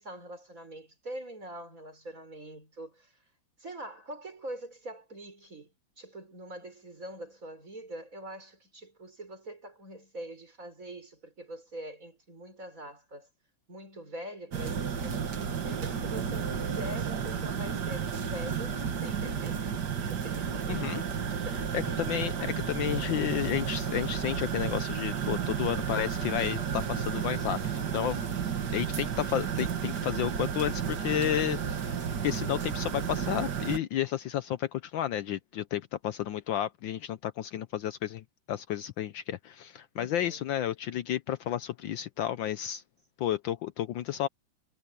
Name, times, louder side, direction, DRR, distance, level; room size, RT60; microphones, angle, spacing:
voice 1, 0.0-3.1 3.6-5.7 6.0-13.3 13.7-19.6 20.0-22.0 22.4-22.5 22.8-23.1 29.5-29.8 40.0-40.4, right 1 dB, 35° right, 6.3 m, -44 dB
sound 1, 14.5-33.8, right 7 dB, 55° right, 2.0 m, -32 dB
voice 2, 20.7-21.0 21.7-28.2 28.7-31.6 31.8-32.0 32.2-42.8 43.2-44.3, left 11 dB, 70° left, 1.3 m, -32 dB
omnidirectional pair, 2.4 m